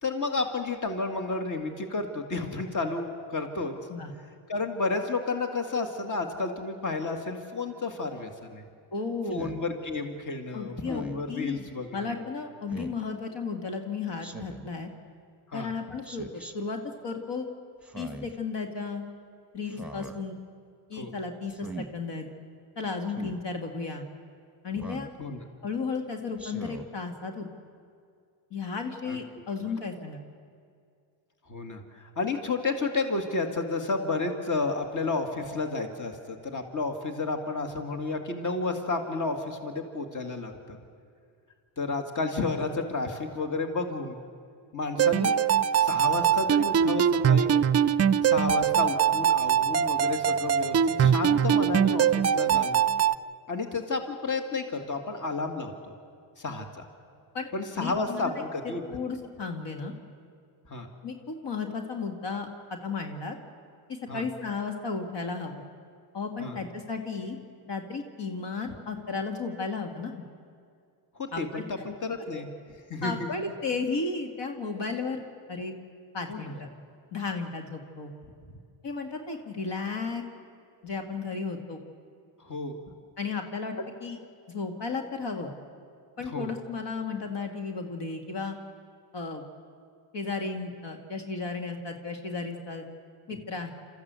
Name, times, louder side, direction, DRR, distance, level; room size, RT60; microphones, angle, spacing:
voice 1, 0.0-3.7 4.5-8.6 9.3-12.2 15.5-15.7 21.0-21.1 25.2-25.4 29.1-29.2 31.5-40.8 41.8-44.2 44.7-45.4 45.7-47.5 48.2-52.8 53.5-55.9 56.4-56.8 57.5-59.0 60.7-60.9 64.1-64.2 66.4-66.6 71.2-72.5 72.9-73.3 76.3-76.6 82.4-82.8 86.2-86.5, left 3 dB, 40° left, 5 dB, 2.2 m, -31 dB
voice 2, 8.9-9.5 10.5-11.6 11.9-14.9 15.5-17.5 18.0-19.0 19.5-20.4 20.9-22.3 22.8-24.1 24.6-25.1 25.6-27.5 28.5-30.2 57.3-57.5 57.8-58.3 58.9-59.9 61.0-63.4 63.9-65.6 66.1-67.4 67.7-70.2 71.3-71.6 72.3-72.4 73.0-75.7 76.1-76.7 77.1-78.1 78.8-80.2 80.8-81.8 83.2-84.2 84.5-85.5 86.2-88.6 89.1-89.4 90.1-92.9 93.3-93.7, left 4 dB, 65° left, 4 dB, 2.1 m, -34 dB
Speech synthesizer, 9.3-9.6 10.8-11.3 12.7-13.0 14.2-14.7 16.0-16.5 17.8-18.4 19.7-20.2 21.5-21.9 23.1-23.4 24.7-25.1 26.4-26.9, right 2 dB, 5° right, 1.6 m, -40 dB
sound 1, 45.0-53.2, right 8 dB, 35° right, 0.5 m, -22 dB
27.5 x 14.0 x 8.2 m, 2.3 s
cardioid pair, 90°, 46 cm